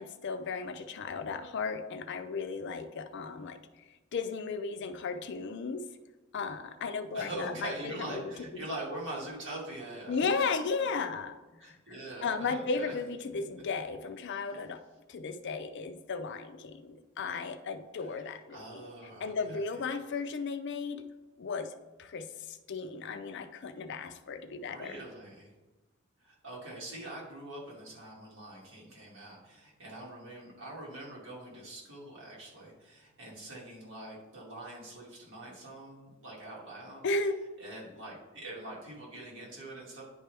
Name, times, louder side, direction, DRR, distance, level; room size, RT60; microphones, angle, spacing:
voice 1, 0.0-3.6 4.1-5.8 6.3-8.3 10.1-11.7 12.2-14.8 15.1-18.9 19.2-21.0 21.4-21.7 22.0-25.0 37.0-37.4, left 4 dB, 60° left, 9 dB, 0.5 m, -35 dB
voice 2, 7.1-10.2 11.6-12.9 18.0-19.6 24.6-25.5 26.2-37.0 37.6-40.0, right 1 dB, 65° right, -5 dB, 2.3 m, -43 dB
10.0 x 4.5 x 3.4 m, 1.1 s
head